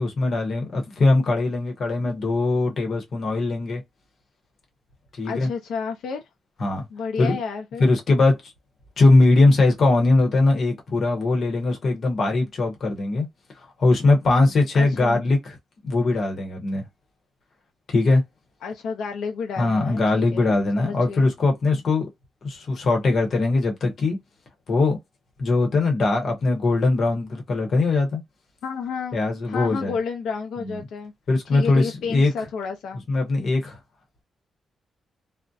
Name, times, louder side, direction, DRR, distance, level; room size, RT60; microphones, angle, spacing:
voice 1, 0.0-3.8 5.2-5.5 6.6-6.9 7.2-7.4 7.8-8.4 9.0-13.3 13.8-15.6 15.8-16.8 17.9-18.2 19.6-22.1 22.4-24.2 24.7-25.0 25.4-28.2 29.1-29.9 30.6-30.8 31.3-32.3 33.1-33.8, left 2 dB, 45° left, 0.8 m, -21 dB
voice 2, 5.2-6.2 6.9-7.9 14.7-15.2 18.6-21.3 28.6-29.2 29.4-31.1 31.5-33.0, left 5 dB, 85° left, 0.5 m, -31 dB
2.6 x 2.1 x 2.3 m
wide cardioid pair, 170°, 0 cm